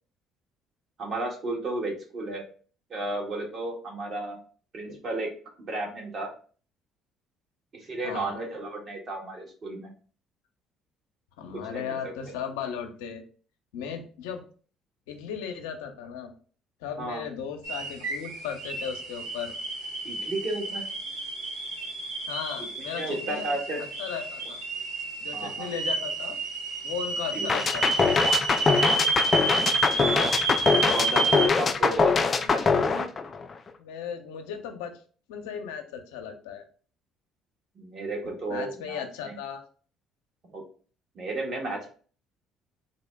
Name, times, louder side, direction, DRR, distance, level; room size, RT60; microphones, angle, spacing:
voice 1, 1.0-2.4 2.9-4.4 4.7-5.3 5.6-6.3 7.8-9.9 11.7-12.3 17.0-17.3 20.0-20.8 22.9-23.8 25.3-25.7 27.3-27.6 30.0-30.3 30.9-33.1 37.8-39.4 40.5-40.6 41.1-41.9, right 2 dB, 55° right, 0 dB, 1.4 m, -33 dB
voice 2, 8.0-8.4 11.4-13.2 13.7-14.4 15.1-16.3 16.8-19.5 22.3-23.5 24.0-24.6 25.2-26.4 26.8-28.0 33.8-35.0 35.3-36.7 38.2-39.6, left 7 dB, 85° left, 5 dB, 0.5 m, -36 dB
sound 1, 17.6-31.5, right 3 dB, 90° right, 1.0 m, -30 dB
sound 2, 27.5-33.7, left 4 dB, 40° left, 0.4 m, -23 dB
3.9 x 2.1 x 3.4 m, 0.41 s
supercardioid pair, 70°, 0 cm